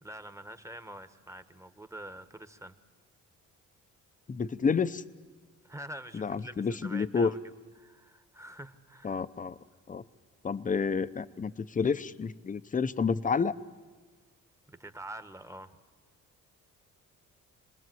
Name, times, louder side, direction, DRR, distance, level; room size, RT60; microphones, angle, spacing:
voice 1, 0.0-2.7 5.6-7.4 7.7-9.2 14.7-15.8, right 1 dB, 10° right, 10 dB, 1.2 m, -46 dB
voice 2, 4.3-5.0 6.1-7.3 9.0-9.6 9.9-10.0 10.4-13.5, left 5 dB, 25° left, 14 dB, 0.7 m, -29 dB
26.5 x 20.0 x 7.8 m, 1.5 s
cardioid pair, 90°, 30 cm